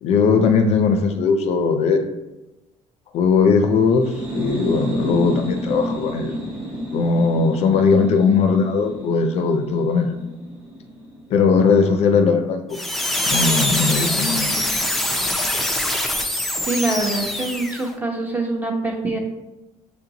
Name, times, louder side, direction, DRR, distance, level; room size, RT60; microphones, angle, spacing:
voice 1, 0.0-2.1 3.1-6.3 6.9-10.2 11.3-12.8 13.3-14.6, left 5 dB, 60° left, 6 dB, 0.4 m, -19 dB
sound 1, 3.9-11.4, equal, 45° right, 1.4 m, -30 dB
sound 2, 12.7-17.9, left 1 dB, ahead, 0.4 m, -23 dB
voice 2, 16.7-19.2, right 2 dB, 15° right, 1 dB, 0.8 m, -24 dB
6.8 x 2.6 x 2.8 m, 1.0 s
cardioid pair, 120°, 12 cm